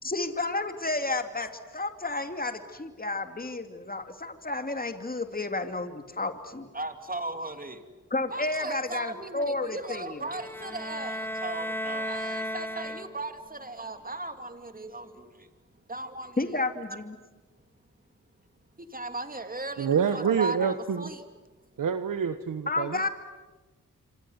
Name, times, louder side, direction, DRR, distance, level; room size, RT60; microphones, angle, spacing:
voice 1, 0.0-6.7 8.1-10.2 16.4-17.2 22.7-23.1, left 2 dB, 25° left, 7 dB, 2.5 m, -31 dB
voice 2, 6.7-7.8 8.3-15.5 15.9-16.5 18.8-21.2, right 2 dB, 25° right, 7 dB, 3.0 m, -37 dB
sound 1, 10.2-13.5, equal, 5° left, 1.2 m, -35 dB
voice 3, 19.8-21.0 21.8-23.1, right 7 dB, 75° right, 10 dB, 1.1 m, -27 dB
27.5 x 26.0 x 8.1 m, 1.2 s
cardioid pair, 55°, 33 cm